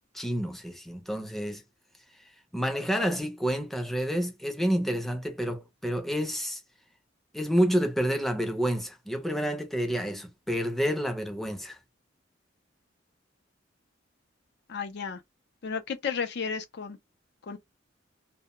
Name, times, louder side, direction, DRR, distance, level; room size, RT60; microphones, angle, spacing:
voice 1, 0.1-1.6 2.5-6.6 7.3-11.8, equal, ahead, 0.5 m, -29 dB
voice 2, 14.7-15.2 15.6-17.0 17.4-17.6, left 6 dB, 60° left, 0.5 m, -33 dB
2.2 x 2.1 x 2.9 m
head